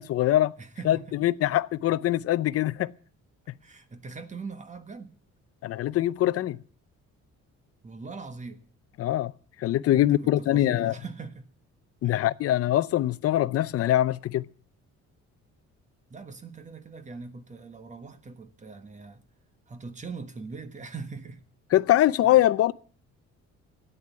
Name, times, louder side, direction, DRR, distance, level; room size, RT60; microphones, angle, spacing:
voice 1, 0.0-0.5 0.8-2.9 5.6-6.6 9.0-9.3 9.6-10.9 12.0-14.5 21.7-22.7, left 13 dB, 55° left, 0.6 m, -23 dB
voice 2, 0.6-1.2 3.6-5.1 7.8-8.6 9.9-11.5 12.0-12.2 16.1-19.2 19.7-21.4 22.3-22.4, right 4 dB, 25° right, 1.3 m, -41 dB
13.0 x 9.3 x 9.4 m
cardioid pair, 160°, 29 cm